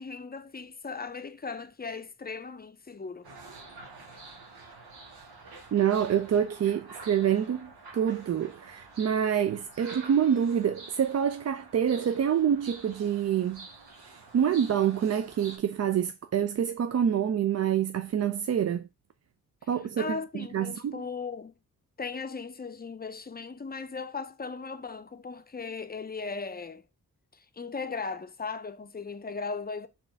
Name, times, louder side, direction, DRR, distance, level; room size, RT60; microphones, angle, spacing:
voice 1, 0.0-3.3 20.0-21.5 22.0-26.8 27.3-29.9, left 4 dB, 25° left, 0.5 m, -37 dB
sound 1, 3.2-15.6, right 3 dB, 90° right, 1.1 m, -48 dB
voice 2, 5.7-13.7 14.1-18.8 19.7-21.0, right 9 dB, 45° right, 0.4 m, -27 dB
4.3 x 2.5 x 4.4 m
cardioid pair, 45°, 37 cm